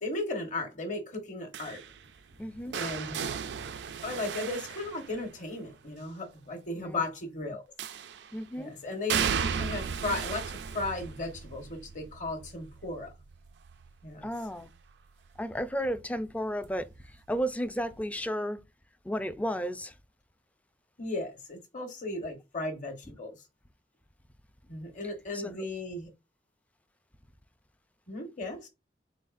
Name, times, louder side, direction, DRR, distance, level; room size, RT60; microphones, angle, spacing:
voice 1, 0.0-1.8 2.7-3.4 4.0-7.6 8.6-13.1 14.0-14.3 21.0-23.4 24.7-26.1 28.1-28.7, left 2 dB, 45° left, 1.3 m, -36 dB
sound 1, 1.5-5.6 7.8-8.4 9.1-14.9 15.3-15.7 16.9-17.0, right 7 dB, 70° right, 0.4 m, -36 dB
voice 2, 2.4-2.8 6.7-7.0 8.3-8.7 14.2-14.7 15.4-16.9 17.3-18.6 19.0-19.9 25.3-25.6, equal, 10° left, 0.4 m, -33 dB
4.0 x 3.9 x 2.5 m
head